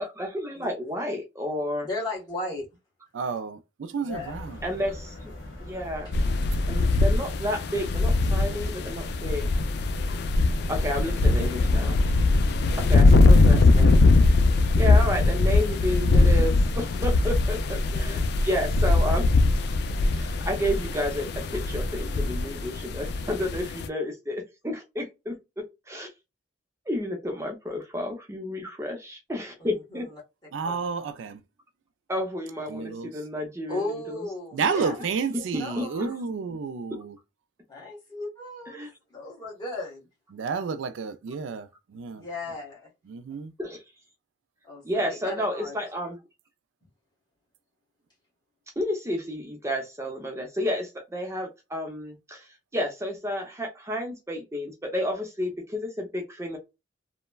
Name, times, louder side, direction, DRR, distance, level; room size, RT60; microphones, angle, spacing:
voice 1, 0.0-1.9 4.6-5.3 5.6-6.1 6.7-9.5 10.7-12.0 12.8-14.0 14.7-19.3 20.2-26.1 26.9-30.1 32.1-33.8 34.1-34.2 35.5-36.1 38.7-38.9 43.6-43.8 44.8-46.2 48.8-52.4 52.7-56.6, left 1 dB, 15° right, 0.6 m, -31 dB
voice 2, 1.8-2.7 3.2-3.3 4.0-4.3 6.0-6.1 17.6-18.3 29.6-30.2 30.6-30.8 33.7-35.1 35.4-36.1 37.7-40.1 42.2-42.9 44.6-45.8, left 2 dB, 20° left, 1.2 m, -36 dB
voice 3, 3.1-4.6 30.5-31.4 32.7-33.1 34.5-37.2 40.3-42.2 43.1-43.5, right 5 dB, 90° right, 0.4 m, -31 dB
sound 1, 4.1-22.5, left 1 dB, 75° left, 1.1 m, -41 dB
sound 2, 6.1-23.9, left 3 dB, 60° left, 0.3 m, -21 dB
3.1 x 2.1 x 2.2 m
head